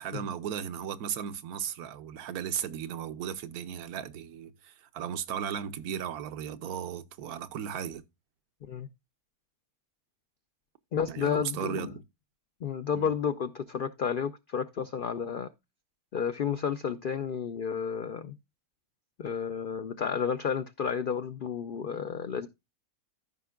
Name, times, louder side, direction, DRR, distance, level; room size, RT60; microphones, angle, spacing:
voice 1, 0.0-8.0 11.1-12.0 12.9-13.1, right 9 dB, 85° right, 1.2 m, -36 dB
voice 2, 10.9-11.9 12.6-15.5 16.1-18.3 19.2-22.5, left 7 dB, 80° left, 0.4 m, -31 dB
14.5 x 5.8 x 2.3 m
omnidirectional pair, 1.6 m